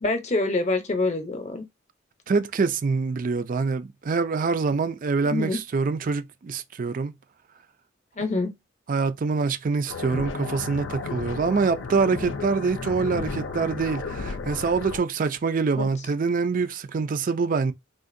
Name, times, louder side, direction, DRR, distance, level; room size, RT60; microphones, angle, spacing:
voice 1, 0.0-1.6 5.3-5.6 8.2-8.5 15.8-15.9, left 2 dB, 35° left, 0.7 m, -26 dB
voice 2, 2.3-7.1 8.9-17.7, right 4 dB, 45° right, 0.4 m, -25 dB
sound 1, 9.9-15.0, left 4 dB, 75° left, 0.5 m, -33 dB
3.6 x 2.5 x 2.6 m
head